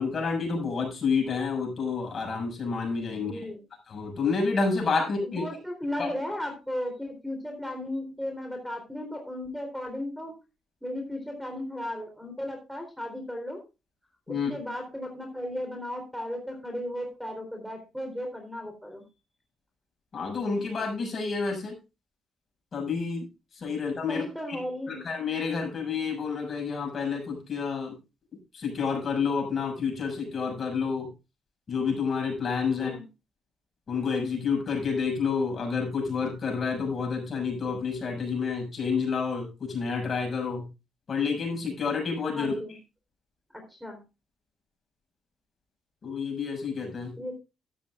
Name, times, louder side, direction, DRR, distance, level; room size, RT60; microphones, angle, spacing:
voice 1, 0.0-3.5 3.9-5.4 6.0-6.1 14.3-14.5 20.1-21.7 22.7-23.3 23.5-24.2 24.9-27.9 28.5-31.1 31.7-32.9 33.9-40.7 41.1-42.5 46.0-47.1, left 5 dB, 45° left, 2 dB, 6.4 m, -29 dB
voice 2, 3.1-3.6 5.0-10.4 10.8-13.6 14.3-19.0 24.1-25.0 32.7-33.1 42.3-42.8 43.5-44.0 47.1-47.4, left 1 dB, ahead, 2 dB, 3.8 m, -35 dB
13.0 x 12.5 x 2.5 m, 0.27 s
cardioid pair, 90°, 0 cm